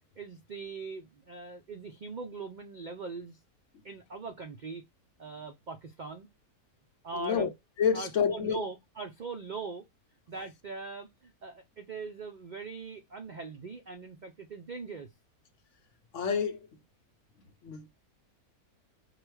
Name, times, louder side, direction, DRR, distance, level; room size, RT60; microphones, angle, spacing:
voice 1, 0.2-3.4 3.8-4.8 5.2-6.3 7.0-7.5 7.9-9.8 10.3-15.1, right 4 dB, 70° right, 0.4 m, -41 dB
voice 2, 7.1-7.5 7.8-8.6 16.1-16.7 17.6-17.9, left 7 dB, 65° left, 0.9 m, -28 dB
4.8 x 2.3 x 4.6 m
omnidirectional pair, 1.6 m